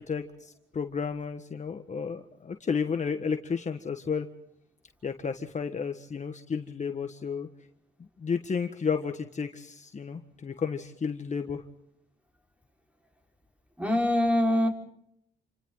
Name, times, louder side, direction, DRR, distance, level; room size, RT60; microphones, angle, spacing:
voice 1, 0.0-4.3 5.0-7.5 8.0-11.6, left 6 dB, 35° left, 6 dB, 1.7 m, -32 dB
voice 2, 13.8-14.7, left 1 dB, 5° right, 2 dB, 4.9 m, -23 dB
29.0 x 26.0 x 4.0 m, 0.73 s
cardioid pair, 90°, 20 cm